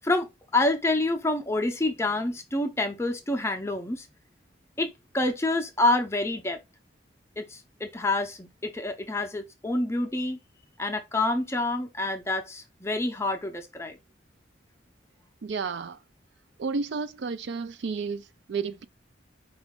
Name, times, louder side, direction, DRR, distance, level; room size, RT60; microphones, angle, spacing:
voice 1, 0.5-4.1 4.8-6.6 7.4-10.4 10.8-14.0, left 2 dB, 15° left, 0.5 m, -27 dB
voice 2, 15.4-16.0 16.6-18.8, right 5 dB, 65° right, 0.4 m, -32 dB
4.9 x 2.4 x 3.5 m
head